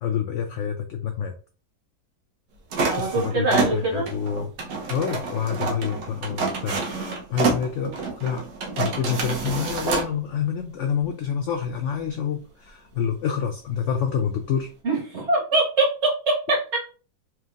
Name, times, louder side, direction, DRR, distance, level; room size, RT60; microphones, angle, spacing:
voice 1, 0.0-1.3 3.0-4.5 4.9-8.5 8.8-14.7, left 7 dB, 85° left, 5 dB, 0.6 m, -27 dB
sound 1, 2.7-10.1, right 4 dB, 80° right, 1.5 m, -28 dB
voice 2, 2.8-4.0 14.8-16.8, right 2 dB, 45° right, -3 dB, 1.6 m, -23 dB
4.4 x 3.4 x 2.4 m, 0.37 s
omnidirectional pair, 1.8 m